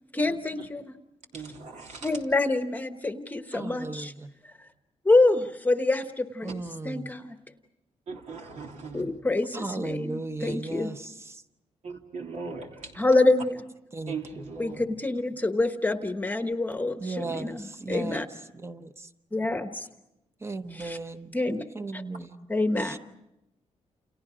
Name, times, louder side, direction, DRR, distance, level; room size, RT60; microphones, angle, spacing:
voice 1, 0.1-0.9 2.0-4.1 4.4-4.6 5.0-7.4 8.9-10.9 13.0-13.6 14.6-18.3 19.3-19.9 20.7-21.0 21.3-21.6 21.9-22.0 22.5-23.0, left 2 dB, 15° left, 7 dB, 1.0 m, -26 dB
voice 2, 1.3-2.1 8.1-9.1 11.8-13.0 14.1-14.8, right 4 dB, 80° right, 1 dB, 3.3 m, -39 dB
voice 3, 3.5-4.3 6.4-7.1 9.5-11.4 13.9-14.5 17.0-18.3 18.6-19.1 20.4-21.3 21.7-22.5 22.8-23.0, right 3 dB, 20° right, 9 dB, 1.0 m, -36 dB
29.5 x 29.0 x 5.0 m, 0.88 s
wide cardioid pair, 155°, 12 cm